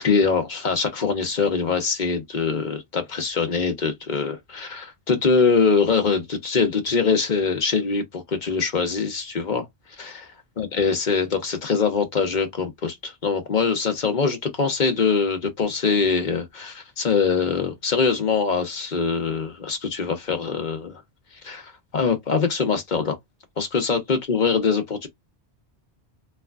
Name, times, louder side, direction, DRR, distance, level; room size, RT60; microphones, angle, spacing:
voice 1, 0.0-9.7 10.0-10.3 10.6-20.9 21.4-23.2 23.6-25.1, left 5 dB, 45° left, 0.9 m, -23 dB
3.3 x 3.3 x 2.3 m
omnidirectional pair, 1.2 m